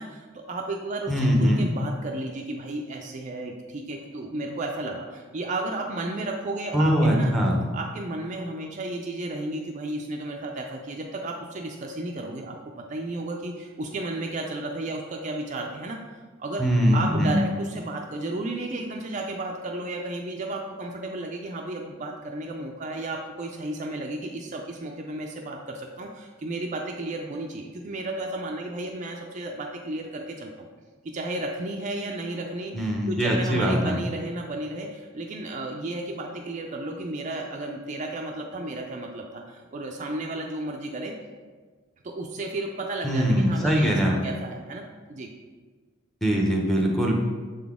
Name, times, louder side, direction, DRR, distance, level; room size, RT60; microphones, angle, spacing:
voice 1, 0.0-1.1 1.4-7.3 7.7-12.6 12.9-16.0 16.4-16.6 16.9-30.7 31.1-41.1 42.0-45.3, right 2 dB, 35° right, 1 dB, 0.4 m, -33 dB
voice 2, 1.1-1.7 6.7-7.6 16.6-17.4 32.7-34.0 43.0-44.2 46.2-47.2, equal, ahead, -1 dB, 0.7 m, -22 dB
6.6 x 4.0 x 3.6 m, 1.4 s
head